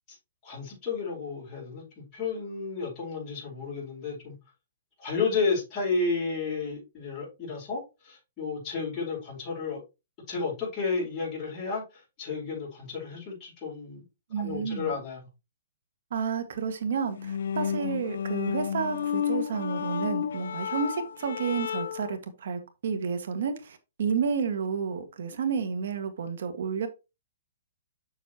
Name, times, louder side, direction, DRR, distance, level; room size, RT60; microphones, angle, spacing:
voice 1, 0.4-4.4 5.0-9.8 10.3-14.0 14.4-15.2, left 4 dB, 20° left, 4.4 m, -32 dB
voice 2, 14.3-14.9 16.1-26.9, right 6 dB, 65° right, 1.9 m, -31 dB
sound 1, 17.1-22.2, left 8 dB, 75° left, 0.4 m, -31 dB
7.3 x 6.6 x 3.0 m
hypercardioid pair, 150°, 0 cm